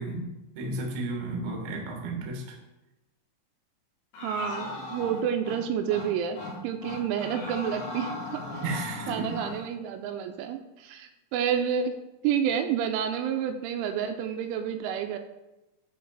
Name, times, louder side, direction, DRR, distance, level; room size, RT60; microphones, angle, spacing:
voice 1, 0.0-2.6 8.6-9.1, right 2 dB, 70° right, 0 dB, 1.9 m, -33 dB
sound 1, 4.1-5.6 5.9-6.1 6.4-6.5 6.8-9.6, left 2 dB, 60° left, 3.4 m, -37 dB
voice 2, 4.2-8.6 9.1-11.9 12.2-15.2, right 8 dB, 85° right, 7 dB, 2.9 m, -29 dB
8.6 x 4.7 x 3.9 m, 1.0 s
omnidirectional pair, 5.6 m